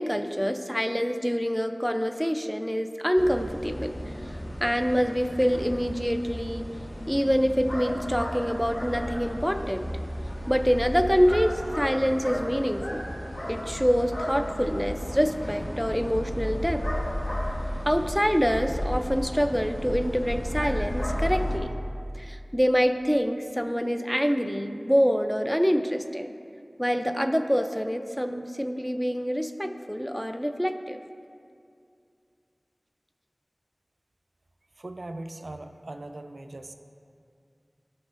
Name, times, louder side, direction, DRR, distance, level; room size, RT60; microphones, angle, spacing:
voice 1, 0.0-6.7 7.1-9.9 10.5-13.1 13.5-16.9 17.9-21.7 22.1-26.3 26.8-31.0, equal, ahead, 7 dB, 0.4 m, -26 dB
sound 1, 3.2-21.6, equal, 50° left, 1.1 m, -33 dB
voice 2, 34.8-36.7, right 2 dB, 75° right, 7 dB, 0.4 m, -39 dB
11.5 x 6.1 x 2.5 m, 2.4 s
wide cardioid pair, 50°, 0 cm